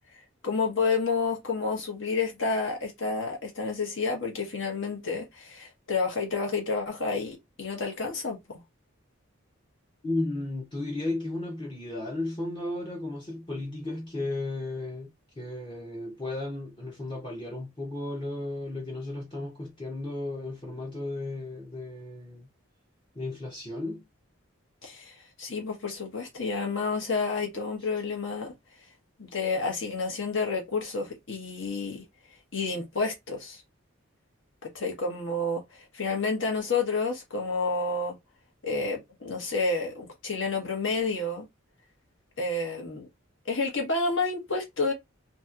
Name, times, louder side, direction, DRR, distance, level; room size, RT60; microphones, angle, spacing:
voice 1, 0.1-8.6 24.8-28.5 29.2-32.0 32.5-33.6 34.7-38.1 38.6-41.5 42.4-43.1 43.4-44.9, left 3 dB, 65° left, 1.2 m, -30 dB
voice 2, 10.0-22.5 23.1-24.0, left 2 dB, 25° left, 0.7 m, -34 dB
2.9 x 2.8 x 2.4 m
head